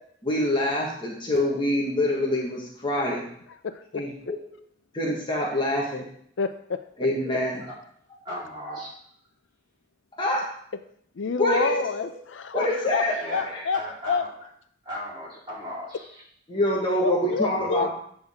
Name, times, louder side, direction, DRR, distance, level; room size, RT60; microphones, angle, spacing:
voice 1, 0.2-3.2 3.9-4.4 4.9-6.0 7.0-7.6 10.2-10.4 11.4-11.8 12.5-13.2 13.5-13.6 16.5-17.9, left 1 dB, 25° left, -2 dB, 1.4 m, -25 dB
voice 2, 3.6-4.3 6.4-6.8 11.2-13.8 14.1-14.2 17.0-17.9, left 5 dB, 85° left, 10 dB, 0.5 m, -28 dB
voice 3, 8.2-8.9 13.2-14.3 14.8-16.2, equal, 25° right, -8 dB, 3.8 m, -36 dB
8.6 x 6.2 x 3.6 m, 0.65 s
head